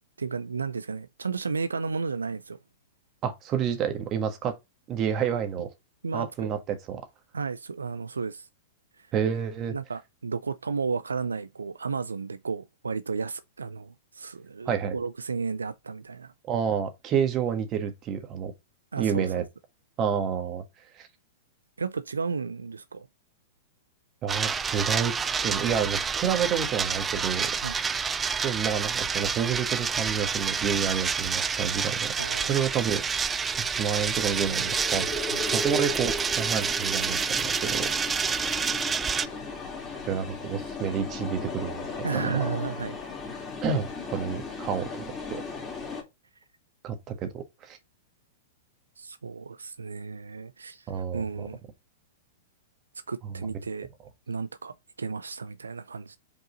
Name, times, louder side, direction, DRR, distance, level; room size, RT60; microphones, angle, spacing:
voice 1, 0.2-2.6 6.0-6.3 7.3-8.5 9.7-16.3 18.9-19.5 21.8-23.1 27.6-27.7 32.2-32.6 35.3-35.4 42.0-43.0 49.0-51.6 53.1-53.9 54.3-56.2, right 5 dB, 85° right, 0.4 m, -33 dB
voice 2, 3.2-4.5 4.9-5.7 6.1-7.0 9.1-9.7 14.6-15.0 16.5-18.5 19.0-19.4 20.0-20.6 20.9-21.1 24.2-25.1 25.4-27.5 28.4-32.1 32.4-33.2 33.7-35.1 35.5-38.2 40.0-42.3 43.6-45.4 46.8-47.8 50.9-51.5 53.2-53.5, right 7 dB, 35° right, 1.6 m, -29 dB
sound 1, 24.3-39.3, right 6 dB, 20° right, 0.5 m, -28 dB
sound 2, 31.9-46.0, left 3 dB, 15° left, 2.5 m, -37 dB
5.3 x 4.7 x 3.9 m
figure-of-eight pair, 105°, 0 cm